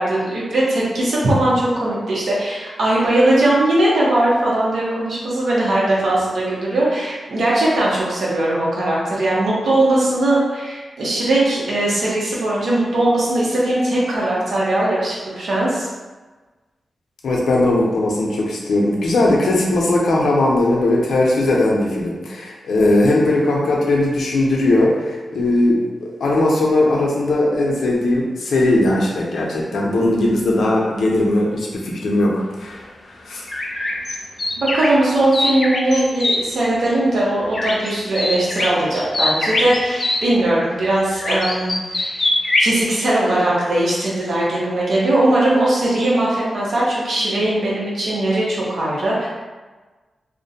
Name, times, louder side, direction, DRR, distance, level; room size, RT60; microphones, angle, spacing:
voice 1, 0.0-15.9 34.6-42.2 42.6-49.3, right 1 dB, 70° right, -6 dB, 0.8 m, -19 dB
voice 2, 17.2-32.8 33.2-33.5, left 2 dB, 85° left, -3 dB, 0.5 m, -18 dB
sound 1, 33.5-36.4 37.5-37.9 38.2-40.2 41.2-42.7, left 2 dB, 30° left, 0.3 m, -21 dB
2.5 x 2.1 x 2.7 m, 1.3 s
wide cardioid pair, 145°, 0 cm